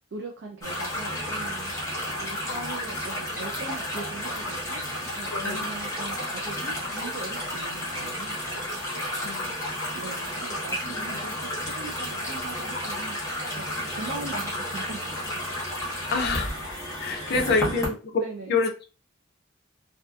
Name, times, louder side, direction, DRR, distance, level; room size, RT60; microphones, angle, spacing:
voice 1, 0.1-1.9 2.2-4.8 5.2-8.4 9.9-15.4 17.1-18.6, right 3 dB, 60° right, 1 dB, 0.4 m, -40 dB
sound 1, 0.6-17.9, left 1 dB, 15° left, 0.9 m, -32 dB
voice 2, 5.3-5.7 9.1-9.6 11.0-11.1 16.1-16.5 17.0-18.2 18.5-18.9, left 4 dB, 55° left, 4 dB, 0.4 m, -27 dB
2.6 x 2.3 x 2.3 m, 0.34 s
head